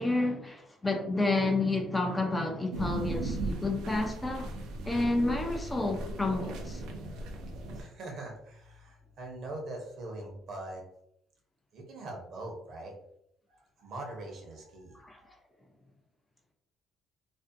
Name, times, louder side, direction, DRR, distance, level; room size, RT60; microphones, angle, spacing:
voice 1, 0.0-4.5 4.8-6.8 15.0-15.2, left 2 dB, 15° left, 0.4 m, -30 dB
sound 1, 2.7-7.8, right 2 dB, 80° right, 0.4 m, -37 dB
voice 2, 7.7-10.8 11.7-12.9 13.5-15.3, right 2 dB, 55° right, 0.8 m, -42 dB
2.5 x 2.1 x 2.5 m
cardioid pair, 120°, 0 cm